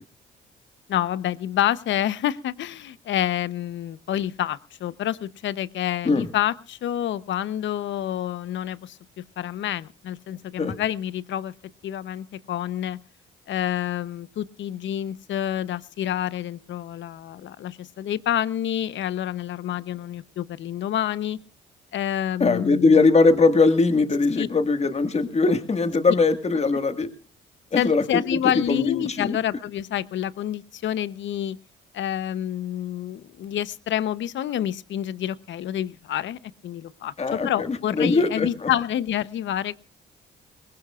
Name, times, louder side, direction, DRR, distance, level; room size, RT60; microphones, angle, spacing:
voice 1, 0.9-11.5 11.8-13.0 13.5-21.4 21.9-23.0 24.4-24.5 27.8-31.6 31.9-39.8, left 11 dB, 70° left, 16 dB, 0.8 m, -28 dB
voice 2, 22.4-27.1 27.7-28.4 28.7-29.4 37.2-38.7, left 3 dB, 35° left, 8 dB, 1.8 m, -21 dB
22.5 x 20.0 x 2.4 m, 0.36 s
cardioid pair, 90°, 20 cm